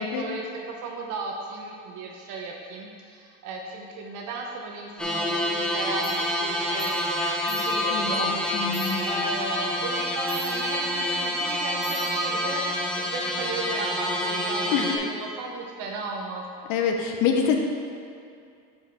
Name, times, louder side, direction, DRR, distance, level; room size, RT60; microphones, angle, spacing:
voice 1, 0.0-16.4, right 3 dB, 60° right, 0 dB, 0.8 m, -35 dB
sound 1, 5.0-15.0, left 1 dB, ahead, 0.7 m, -27 dB
sound 2, 6.0-6.2 6.8-7.0 7.3-8.1 8.5-9.5 10.0-11.1 11.5-12.7, right 2 dB, 35° right, 1.4 m, -41 dB
voice 2, 7.9-9.0 14.7-14.9 16.7-17.6, left 7 dB, 60° left, 3 dB, 0.7 m, -26 dB
5.8 x 5.4 x 4.6 m, 2.4 s
cardioid pair, 130°, 34 cm